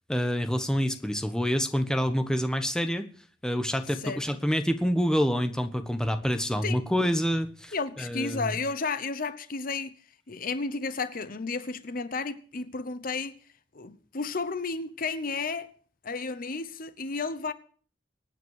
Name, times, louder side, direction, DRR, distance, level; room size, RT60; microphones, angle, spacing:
voice 1, 0.1-3.1 3.4-8.5, equal, 5° left, 1.3 m, -27 dB
voice 2, 7.7-10.0 10.3-13.3 13.7-15.7 16.0-17.5, left 4 dB, 50° left, 0.9 m, -32 dB
24.0 x 9.4 x 4.7 m
head